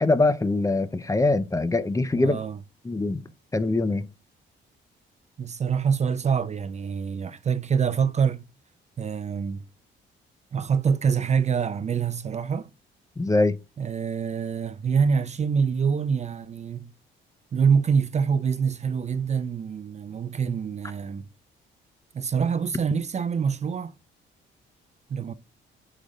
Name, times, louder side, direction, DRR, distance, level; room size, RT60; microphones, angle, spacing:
voice 1, 0.0-2.4 2.8-3.2 3.5-4.1 13.2-13.6, left 2 dB, 15° left, 0.6 m, -23 dB
voice 2, 2.1-2.6 5.4-8.4 9.0-9.6 10.5-12.7 13.8-16.9 17.5-21.2 22.1-23.9 25.1-25.3, right 6 dB, 35° right, 0.4 m, -25 dB
5.0 x 3.9 x 5.3 m
cardioid pair, 90°, 20 cm